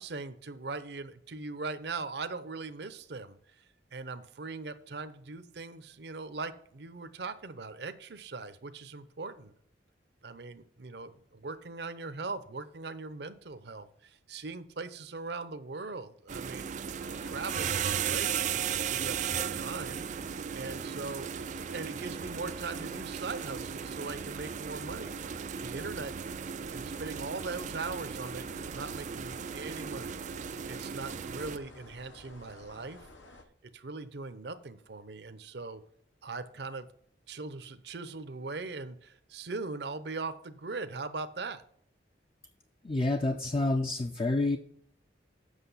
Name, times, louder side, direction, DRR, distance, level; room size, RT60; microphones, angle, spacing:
voice 1, 0.0-3.6 3.9-9.5 10.2-16.7 17.2-25.3 25.6-26.1 26.7-33.1 33.7-35.8 36.2-36.9 37.3-41.6, right 3 dB, 60° right, 11 dB, 0.7 m, -40 dB
sound 1, 16.3-31.6, right 7 dB, 40° right, 0.3 m, -36 dB
sound 2, 17.0-33.4, left 2 dB, 90° left, 1.3 m, -53 dB
voice 2, 42.8-44.6, left 2 dB, 30° left, 6 dB, 0.5 m, -28 dB
8.1 x 6.2 x 5.6 m, 0.65 s
head